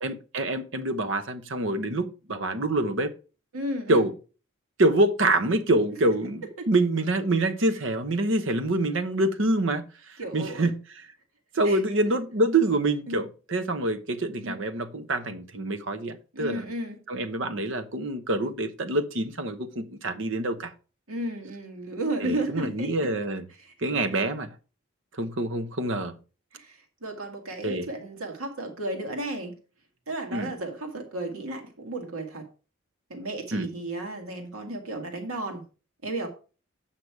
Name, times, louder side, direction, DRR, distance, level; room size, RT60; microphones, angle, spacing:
voice 1, 0.0-3.1 3.9-4.1 4.8-11.1 11.5-16.7 17.1-20.7 22.2-23.5 23.8-24.5 25.1-26.2 27.6-27.9 30.3-30.5 33.5-33.7, right 2 dB, 60° right, 0.9 m, -26 dB
voice 2, 3.5-4.1 6.6-6.7 10.2-10.7 11.6-11.8 13.1-13.3 14.4-14.7 16.3-17.0 21.1-22.9 23.6-23.9 26.5-29.5 30.1-32.5 33.1-35.6 36.0-36.3, right 1 dB, 85° right, 2.0 m, -33 dB
8.1 x 5.8 x 4.7 m
head